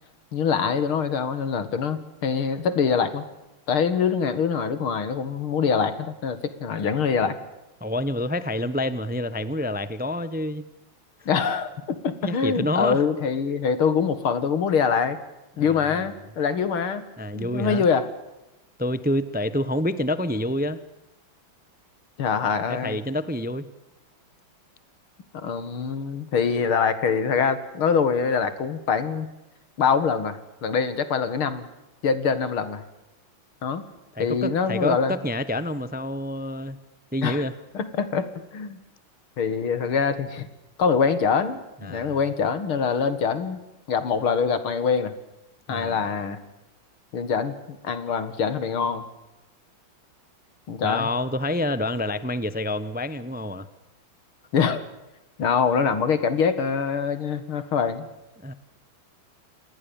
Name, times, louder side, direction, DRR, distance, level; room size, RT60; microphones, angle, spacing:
voice 1, 0.3-3.2 3.7-7.4 11.3-15.2 15.6-17.0 17.3-18.0 22.2-23.0 25.3-29.3 29.8-31.7 32.0-32.8 33.6-33.8 34.2-35.2 37.2-37.4 37.7-38.8 39.4-40.5 40.8-45.1 45.7-46.4 47.1-47.5 47.8-49.0 50.7-51.1 54.5-54.9 55.4-58.1, left 6 dB, 85° left, 12 dB, 2.8 m, -24 dB
voice 2, 7.8-10.7 12.2-13.0 15.6-16.1 17.2-17.9 18.8-20.8 22.7-23.7 34.1-36.8 37.1-37.5 41.8-42.2 45.7-46.0 50.8-53.7 58.4-58.5, left 1 dB, 10° right, 14 dB, 0.6 m, -28 dB
28.0 x 20.0 x 7.2 m, 0.98 s
omnidirectional pair, 2.3 m